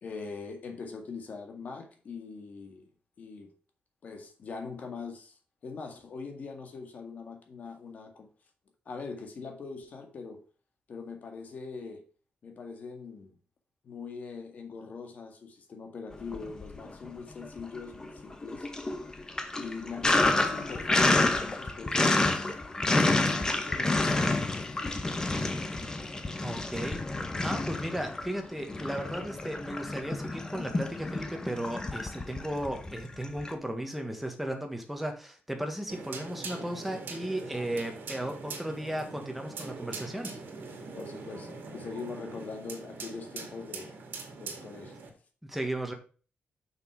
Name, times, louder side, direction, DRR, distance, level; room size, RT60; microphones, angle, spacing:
voice 1, 0.0-2.9 3.2-3.5 4.0-8.3 8.9-10.4 10.9-12.0 12.4-13.4 13.8-18.7 19.6-22.1 22.9-24.6 40.9-43.9 44.3-45.1, left 4 dB, 50° left, 1.8 m, -42 dB
Sink (filling or washing), 16.2-17.1 17.4-33.5, left 2 dB, 20° left, 0.9 m, -29 dB
voice 2, 26.4-27.0 27.4-40.4 45.5-45.9, right 1 dB, 5° right, 1.4 m, -35 dB
sound 1, 35.9-45.1, right 4 dB, 70° right, 2.1 m, -42 dB
6.7 x 6.2 x 4.7 m
wide cardioid pair, 165°, 4 cm